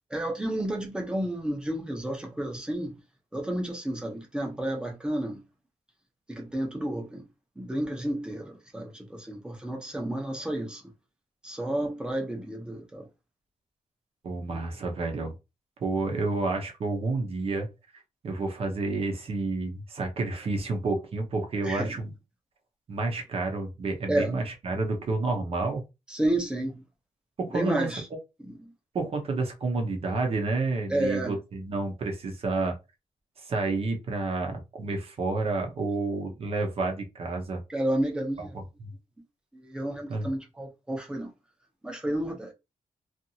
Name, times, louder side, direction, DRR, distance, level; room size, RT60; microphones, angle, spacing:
voice 1, 0.1-2.9 3.3-5.4 6.3-7.3 7.6-10.8 11.4-13.1 21.6-21.9 24.1-24.4 26.1-26.8 27.5-28.1 28.5-28.7 30.9-31.4 37.7-38.6 39.5-41.3 41.8-42.5, right 1 dB, 5° right, 0.7 m, -31 dB
voice 2, 14.2-15.3 15.8-17.7 18.2-22.1 22.9-25.8 27.4-27.9 28.9-32.8 33.4-37.6 38.4-38.5 40.1-40.3, right 3 dB, 45° right, 0.7 m, -30 dB
2.8 x 2.5 x 2.7 m
wide cardioid pair, 170°, 13 cm